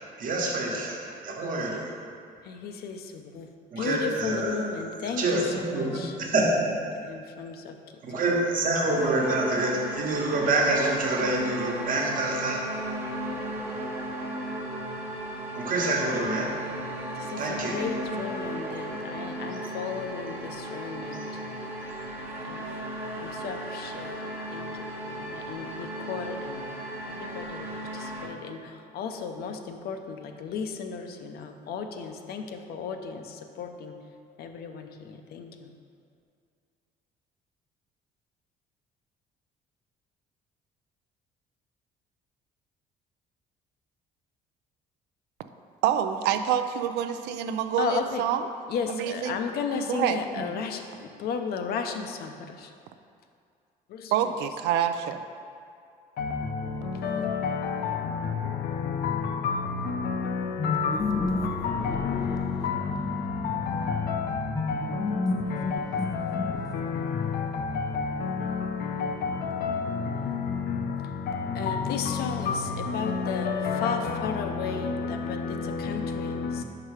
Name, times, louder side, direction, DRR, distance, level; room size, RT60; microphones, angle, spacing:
voice 1, 0.2-1.9 3.7-4.8 5.0-6.7 8.0-12.6 15.6-16.5 17.4-17.8, right 2 dB, 55° right, -1 dB, 1.2 m, -27 dB
voice 2, 2.5-3.5 3.8-6.1 7.0-7.7 17.3-17.4 17.7-21.3 22.4-22.9 23.2-24.7 25.1-26.7 27.1-33.9 34.4-35.7 47.8-48.2 48.7-50.8 51.2-52.7 53.9-54.1 56.2-76.6, left 5 dB, 70° left, 5 dB, 0.6 m, -32 dB
sound 1, 8.9-28.3, right 1 dB, 10° right, 0.9 m, -35 dB
voice 3, 45.8-48.5 48.9-49.4 49.9-50.6 54.1-55.2, right 9 dB, 80° right, 9 dB, 0.4 m, -27 dB
sound 2, 60.6-63.1 64.6-67.0, left 4 dB, 20° left, 0.4 m, -31 dB
5.5 x 4.8 x 4.8 m, 2.4 s
cardioid pair, 110°, 17 cm